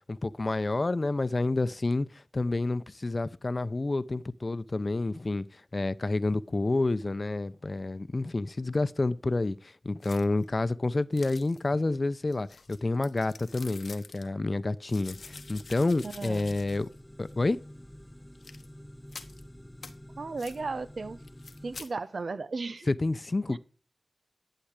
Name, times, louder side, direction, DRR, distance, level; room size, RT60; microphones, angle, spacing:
voice 1, 0.1-16.9 17.2-17.6 22.9-23.6, left 2 dB, 50° left, 0.7 m, -29 dB
sound 1, 10.0-10.5 11.1-11.8 12.3-14.3 14.9-17.0 17.3-17.4 18.3-18.7 19.1-19.4 19.8-19.9 20.4-20.6 21.2-21.9, left 4 dB, 90° left, 1.1 m, -48 dB
sound 2, 15.1-21.8, equal, 10° left, 0.7 m, -49 dB
voice 2, 16.0-16.6 20.2-21.2 21.6-22.9 23.5-23.6, right 3 dB, 75° right, 0.8 m, -35 dB
11.5 x 7.9 x 4.9 m
cardioid pair, 45°, 0 cm